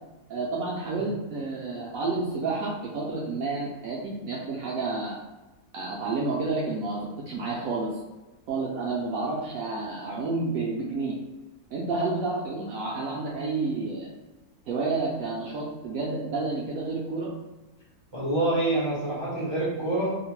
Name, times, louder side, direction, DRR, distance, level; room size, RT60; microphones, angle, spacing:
voice 1, 0.3-5.1 5.7-7.9 8.5-11.1 11.7-14.1 14.7-17.3, right 3 dB, 70° right, -4 dB, 0.9 m, -30 dB
voice 2, 18.1-20.3, right 2 dB, 45° right, -9 dB, 0.3 m, -26 dB
2.8 x 2.1 x 2.9 m, 1.1 s
omnidirectional pair, 1.6 m